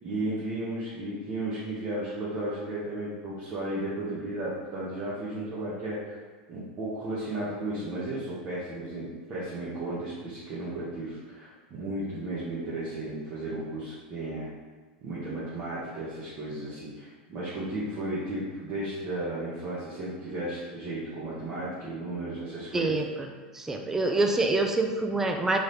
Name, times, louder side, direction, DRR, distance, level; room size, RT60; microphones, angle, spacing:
voice 1, 0.0-6.2 6.5-14.5 15.0-23.0, right 1 dB, 35° right, -9 dB, 1.2 m, -34 dB
voice 2, 22.7-23.3 23.5-25.6, right 2 dB, 10° right, 3 dB, 0.4 m, -26 dB
3.8 x 3.4 x 4.0 m, 1.4 s
supercardioid pair, 135°, 5 cm